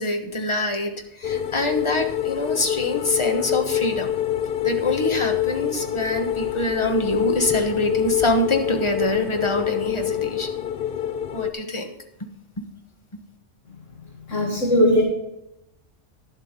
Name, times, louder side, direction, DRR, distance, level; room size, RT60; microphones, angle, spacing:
voice 1, 0.0-4.1 4.6-10.5 11.3-11.9 12.6-12.7, left 1 dB, 25° left, 4 dB, 1.1 m, -25 dB
sound 1, 1.2-11.5, left 11 dB, 60° left, 0.7 m, -26 dB
voice 2, 14.3-15.0, equal, 80° left, -2 dB, 2.2 m, -18 dB
11.0 x 7.6 x 5.2 m, 0.87 s
omnidirectional pair, 1.3 m